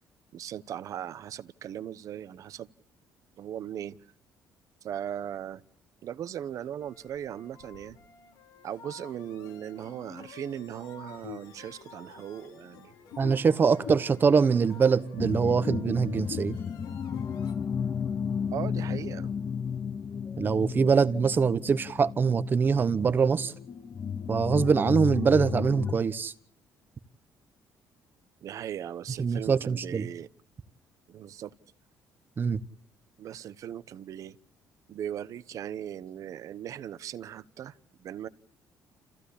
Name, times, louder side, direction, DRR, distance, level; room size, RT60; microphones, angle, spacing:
voice 1, 0.3-2.7 3.4-4.0 4.8-5.6 6.0-8.0 8.6-12.9 18.5-19.3 28.4-30.3 31.1-31.5 33.2-34.4 34.9-38.3, right 10 dB, 55° right, 1.0 m, -38 dB
sound 1, 6.8-17.5, left 8 dB, 85° left, 3.7 m, -47 dB
voice 2, 13.2-16.6 20.4-23.5 24.3-26.3 29.2-30.1 32.4-32.6, right 5 dB, 30° right, 1.1 m, -24 dB
sound 2, 15.2-25.9, left 7 dB, 35° left, 1.0 m, -33 dB
29.5 x 15.5 x 8.5 m
cardioid pair, 140°, 7 cm